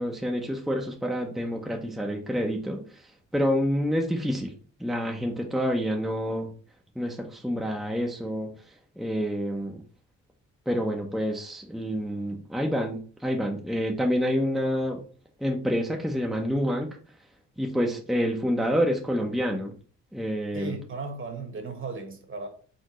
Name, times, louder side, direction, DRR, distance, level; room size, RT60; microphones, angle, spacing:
voice 1, 0.0-4.5 4.8-6.5 7.0-9.8 10.7-15.0 15.4-17.0 17.6-19.7 20.1-20.8, equal, ahead, 0.7 m, -28 dB
voice 2, 20.5-22.5, right 3 dB, 40° right, 1.4 m, -36 dB
4.4 x 3.8 x 3.0 m
cardioid pair, 90°, 30 cm